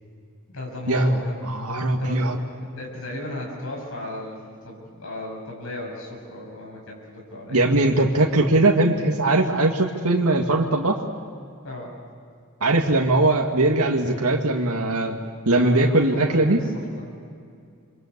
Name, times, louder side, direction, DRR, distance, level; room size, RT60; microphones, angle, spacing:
voice 1, 0.5-1.4 1.9-7.6 11.6-12.0 15.5-17.1, left 1 dB, 70° left, -1 dB, 6.9 m, -35 dB
voice 2, 1.4-2.4 7.5-11.0 12.6-15.2 15.5-16.6, right 2 dB, 90° right, 0 dB, 2.1 m, -20 dB
27.5 x 25.0 x 8.3 m, 2.3 s
head